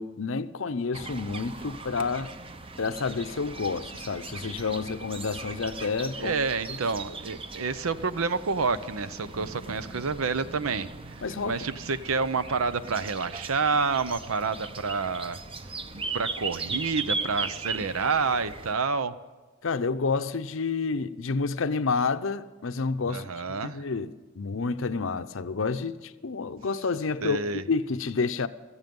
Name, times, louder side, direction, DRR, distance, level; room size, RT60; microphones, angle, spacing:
voice 1, 0.0-2.3 2.8-6.4 6.7-6.8 11.2-11.5 19.6-28.5, left 4 dB, 65° left, 0.7 m, -29 dB
sound 1, 0.9-18.7, right 3 dB, 25° right, 0.8 m, -38 dB
voice 2, 6.2-10.9 11.4-15.4 15.9-19.1 23.1-23.8 27.2-27.6, right 4 dB, 85° right, 0.8 m, -28 dB
17.0 x 14.0 x 5.4 m
head